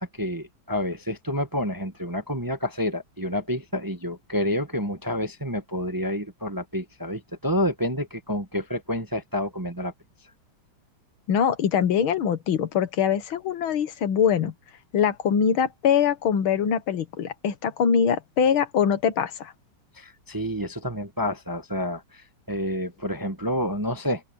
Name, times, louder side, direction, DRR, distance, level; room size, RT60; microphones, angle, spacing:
voice 1, 0.0-9.9 19.9-24.2, equal, 15° right, 0.8 m, -29 dB
voice 2, 11.3-14.5 14.9-19.5, left 7 dB, 90° left, 2.1 m, -23 dB
open air
omnidirectional pair, 2.2 m